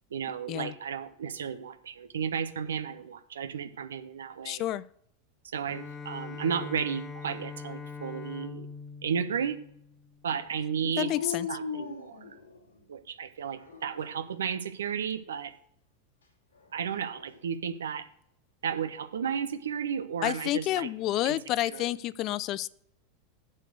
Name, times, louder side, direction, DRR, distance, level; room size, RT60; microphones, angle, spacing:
voice 1, 0.1-4.6 5.4-8.7 9.0-9.6 10.2-11.1 11.5-12.2 12.9-15.5 16.7-18.1 18.6-20.9 21.2-21.4 21.6-21.9, right 7 dB, 70° right, 11 dB, 0.8 m, -33 dB
voice 2, 4.4-4.8 11.0-11.5 20.2-22.7, left 15 dB, 45° left, 20 dB, 0.4 m, -29 dB
Bowed string instrument, 5.6-10.4, left 5 dB, 20° left, 1.4 m, -42 dB
Dog, 10.9-12.8 13.5-14.3 16.5-17.4, left 6 dB, 80° left, 2.6 m, -39 dB
7.5 x 6.5 x 6.3 m, 0.69 s
figure-of-eight pair, 85°, 0 cm